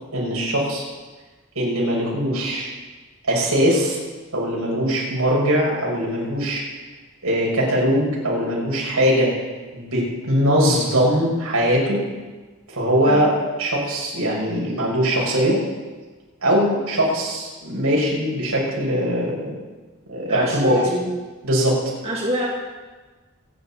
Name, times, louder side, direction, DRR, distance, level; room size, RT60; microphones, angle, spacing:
voice 1, 0.1-0.9 1.6-2.7 3.3-4.0 4.3-6.6 7.2-9.3 9.7-12.0 12.7-13.3 13.6-15.6 16.4-19.5 20.1-20.8 21.4-21.8, equal, 80° right, -4 dB, 5.9 m, -21 dB
voice 2, 20.3-21.1 22.0-22.5, equal, 30° right, -5 dB, 2.2 m, -25 dB
24.5 x 10.5 x 4.3 m, 1.3 s
head